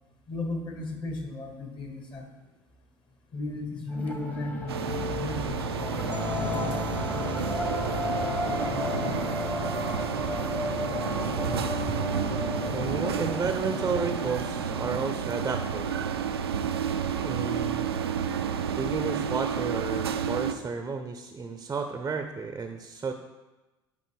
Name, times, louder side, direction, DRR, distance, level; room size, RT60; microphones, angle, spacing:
voice 1, 0.3-2.2 3.3-6.0 6.3-7.3 12.3-12.4, left 2 dB, 40° left, 3 dB, 1.6 m, -36 dB
sound 1, 3.9-16.8, left 2 dB, 10° left, 1.0 m, -34 dB
sound 2, 4.7-20.5, right 7 dB, 80° right, 0.4 m, -31 dB
voice 2, 11.5-12.1 12.7-15.9 17.2-17.9 18.7-23.1, right 5 dB, 20° right, 6 dB, 0.6 m, -32 dB
8.7 x 5.2 x 3.3 m, 1.1 s
figure-of-eight pair, 65°, 13 cm